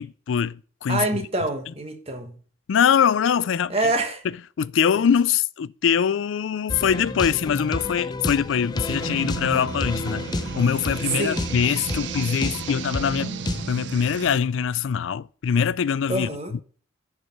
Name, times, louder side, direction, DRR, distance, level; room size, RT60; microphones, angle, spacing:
voice 1, 0.0-1.1 2.7-3.8 4.6-10.2 10.5-13.3 13.7-16.3, left 7 dB, 90° left, 0.4 m, -23 dB
voice 2, 0.9-2.3 3.7-4.2 11.2-11.5 16.1-16.5, right 2 dB, 30° right, 1.4 m, -26 dB
sound 1, 6.7-13.7, left 2 dB, 20° left, 0.5 m, -31 dB
sound 2, 8.9-14.4, right 6 dB, 70° right, 0.4 m, -34 dB
11.0 x 4.8 x 5.3 m
head